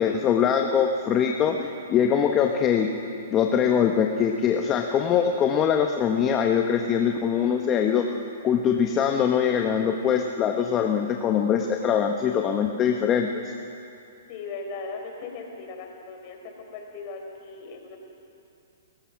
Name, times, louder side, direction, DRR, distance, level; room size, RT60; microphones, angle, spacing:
voice 1, 0.0-2.9 3.3-8.1 8.4-13.3, left 8 dB, 25° left, 3 dB, 1.1 m, -23 dB
voice 2, 14.3-18.0, left 4 dB, 45° left, 3 dB, 4.3 m, -38 dB
30.0 x 15.0 x 6.0 m, 2.7 s
hypercardioid pair, 135°, 0 cm